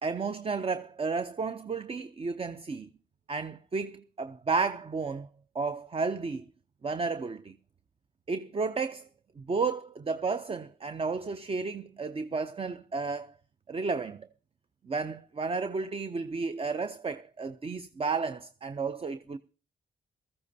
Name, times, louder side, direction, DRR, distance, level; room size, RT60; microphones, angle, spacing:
voice 1, 0.0-2.9 3.3-5.3 5.5-6.5 6.8-7.6 8.3-9.1 9.4-13.3 13.7-14.3 14.8-19.4, right 4 dB, 30° right, 0.5 m, -32 dB
19.0 x 14.0 x 2.7 m
supercardioid pair, 50°, 19 cm